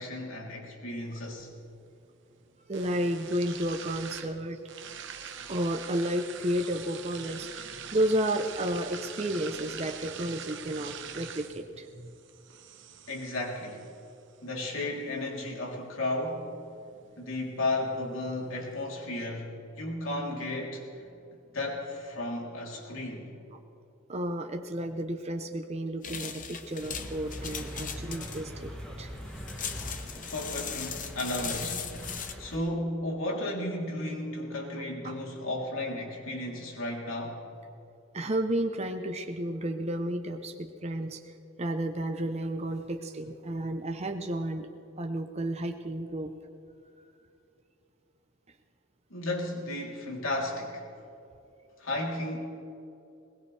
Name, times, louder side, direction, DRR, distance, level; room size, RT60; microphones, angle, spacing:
voice 1, 0.0-1.5 13.1-13.8 14.4-16.5 17.2-20.9 21.5-23.3 30.2-31.9 32.1-37.4 49.1-50.9 51.8-52.4, left 1 dB, 70° left, -1 dB, 3.4 m, -34 dB
sound 1, 0.9-18.9, right 8 dB, 60° right, 1.1 m, -46 dB
voice 2, 2.7-4.6 5.5-12.1 24.1-29.1 35.0-35.1 38.1-41.2 41.6-44.7 45.0-46.3 47.0-47.1, right 1 dB, 30° right, 5 dB, 0.8 m, -32 dB
sound 2, 26.0-32.3, left 7 dB, 40° left, 0.9 m, -38 dB
sound 3, 26.8-32.6, equal, 5° left, 2.5 m, -42 dB
21.5 x 20.0 x 3.4 m, 2.8 s
head